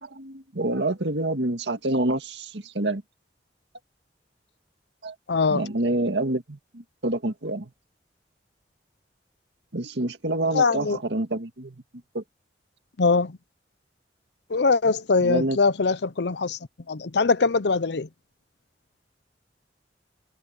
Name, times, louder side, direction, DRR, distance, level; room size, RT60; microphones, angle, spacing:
voice 1, 0.0-3.0 5.0-5.2 5.5-7.7 9.7-11.8 12.1-12.2 15.2-15.6, right 2 dB, 75° right, 2.0 m, -27 dB
voice 2, 5.3-5.6 10.5-11.0 13.0-13.4 14.5-16.6 16.9-18.1, left 4 dB, 70° left, 0.7 m, -22 dB
head